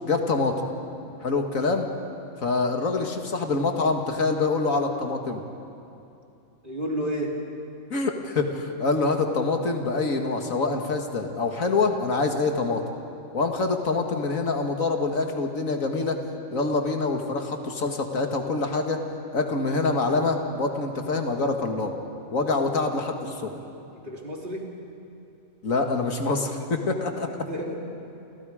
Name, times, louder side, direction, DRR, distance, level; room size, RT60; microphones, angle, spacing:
voice 1, 0.0-0.6 1.2-1.9 2.4-5.4 7.9-12.8 13.3-16.2 16.5-19.0 19.3-22.0 22.3-23.5 25.6-27.3, left 3 dB, 80° left, 3 dB, 2.2 m, -25 dB
voice 2, 6.6-7.5 23.9-24.7 26.9-27.8, equal, 40° right, -1 dB, 3.3 m, -32 dB
29.0 x 28.5 x 5.0 m, 2.7 s
omnidirectional pair, 1.4 m